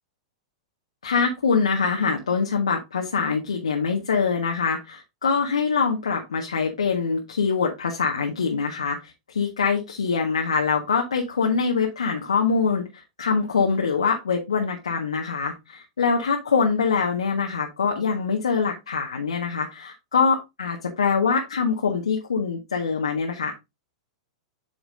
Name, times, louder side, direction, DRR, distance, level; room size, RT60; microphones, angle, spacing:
voice 1, 1.0-23.5, left 5 dB, 85° left, 2 dB, 1.4 m, -24 dB
8.5 x 5.9 x 2.6 m, 0.22 s
hypercardioid pair, 110°, 3 cm